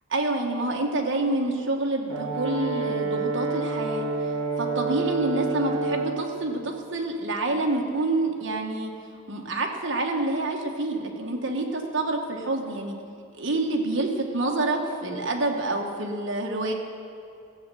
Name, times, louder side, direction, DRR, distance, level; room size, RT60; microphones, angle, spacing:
voice 1, 0.1-4.1 4.6-8.9 9.3-12.9 13.4-16.7, right 2 dB, 55° right, 1 dB, 1.3 m, -27 dB
Brass instrument, 2.1-6.3, right 4 dB, 75° right, 1.3 m, -28 dB
14.5 x 7.5 x 6.9 m, 2.5 s
head